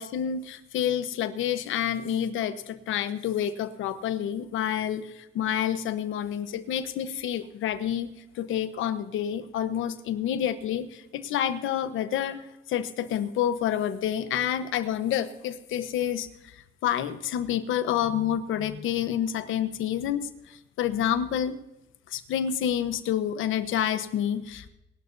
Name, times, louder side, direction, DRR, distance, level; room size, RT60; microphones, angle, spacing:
voice 1, 0.0-12.4 12.7-21.6 22.1-24.7, left 10 dB, 85° left, 11 dB, 1.1 m, -28 dB
23.0 x 12.0 x 2.7 m, 0.92 s
cardioid pair, 90°, 20 cm